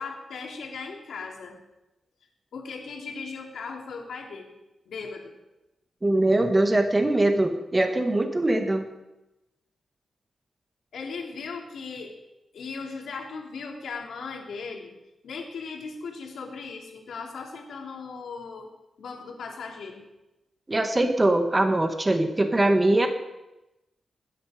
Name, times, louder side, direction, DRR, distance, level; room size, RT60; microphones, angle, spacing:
voice 1, 0.0-1.6 2.5-4.5 4.9-5.3 10.9-12.2 12.5-14.9 15.2-18.7 19.0-20.0, left 4 dB, 85° left, 1 dB, 3.1 m, -37 dB
voice 2, 6.0-8.9 20.7-23.1, right 1 dB, 20° right, 5 dB, 1.6 m, -22 dB
20.5 x 10.0 x 5.1 m, 0.97 s
wide cardioid pair, 105°, 0 cm